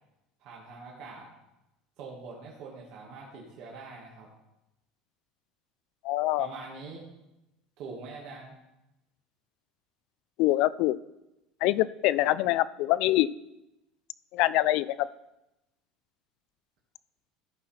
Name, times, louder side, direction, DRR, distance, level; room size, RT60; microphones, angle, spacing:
voice 1, 0.4-1.3 2.0-4.3 6.4-7.0 7.8-8.6, right 4 dB, 60° right, -3 dB, 1.8 m, -43 dB
voice 2, 6.0-6.5 10.4-11.0 11.6-13.3 14.3-15.1, left 16 dB, 65° left, 18 dB, 0.3 m, -24 dB
13.5 x 5.6 x 4.3 m, 0.95 s
cardioid pair, 145°, 0 cm